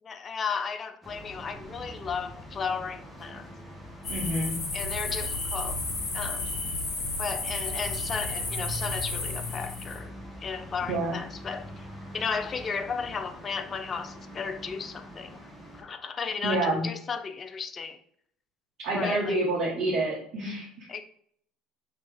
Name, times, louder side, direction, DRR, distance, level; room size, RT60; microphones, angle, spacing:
voice 1, 0.0-3.5 4.7-5.8 6.1-6.5 7.2-10.1 10.4-11.9 12.1-15.5 15.7-18.0 18.9-19.4 20.9-21.0, left 5 dB, 35° left, 0.4 m, -34 dB
sound 1, 1.0-15.8, equal, 5° left, 1.2 m, -43 dB
sound 2, 4.0-10.0, left 2 dB, 55° left, 1.2 m, -32 dB
voice 2, 4.1-4.5 7.5-7.6 10.9-11.1 16.4-16.8 18.8-20.9, right 2 dB, 55° right, 1.1 m, -28 dB
3.0 x 2.9 x 3.4 m
hypercardioid pair, 75°, 0 cm